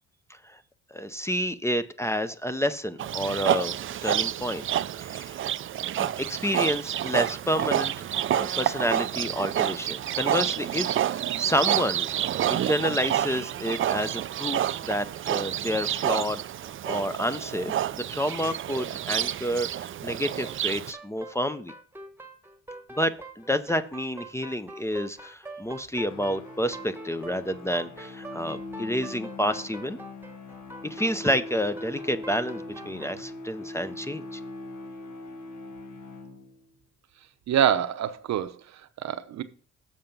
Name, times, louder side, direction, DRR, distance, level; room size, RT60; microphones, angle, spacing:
voice 1, 0.9-3.8 4.0-4.7 5.0-5.4 6.0-7.9 8.3-12.1 12.5-16.4 16.9-21.7 23.0-30.0 30.8-34.4, equal, 10° left, 0.5 m, -29 dB
Livestock farm animals working animals, 3.0-20.9, right 11 dB, 45° right, 0.4 m, -29 dB
sound 1, 20.4-33.2, right 2 dB, 5° right, 1.1 m, -44 dB
sound 2, 26.0-36.8, left 2 dB, 70° left, 1.6 m, -41 dB
voice 2, 37.5-39.4, right 9 dB, 65° right, 0.8 m, -26 dB
7.4 x 5.7 x 5.3 m
cardioid pair, 90°, 30 cm